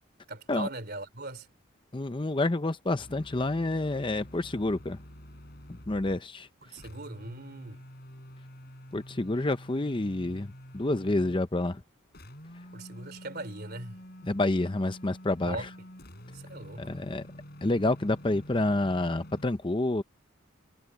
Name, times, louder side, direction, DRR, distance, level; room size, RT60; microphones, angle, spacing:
voice 1, 0.3-1.5 6.6-7.8 12.7-14.0 15.4-15.7 16.3-16.9, right 2 dB, 50° right, 3.9 m, -40 dB
voice 2, 1.9-5.0 5.7-6.5 8.9-11.8 14.2-15.7 16.8-17.2 17.6-20.0, left 2 dB, 25° left, 0.6 m, -28 dB
sound 1, 3.0-6.3 6.8-11.5 12.1-19.5, equal, 50° left, 7.7 m, -48 dB
head